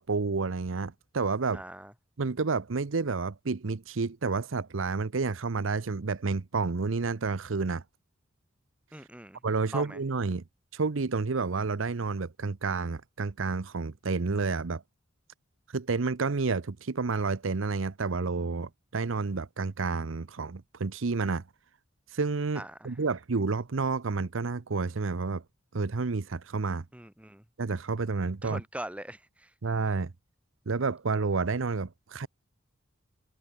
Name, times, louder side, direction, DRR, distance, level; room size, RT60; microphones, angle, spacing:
voice 1, 0.0-1.6 2.2-7.8 9.4-10.4 10.7-14.8 15.7-21.4 22.1-25.4 25.7-26.8 27.6-28.6 29.6-30.1 30.7-32.3, right 4 dB, 75° right, 0.7 m, -30 dB
voice 2, 1.5-1.9 8.9-9.4 9.7-10.0 22.6-22.9 26.9-27.4 28.4-29.5, right 1 dB, 5° right, 2.2 m, -41 dB
head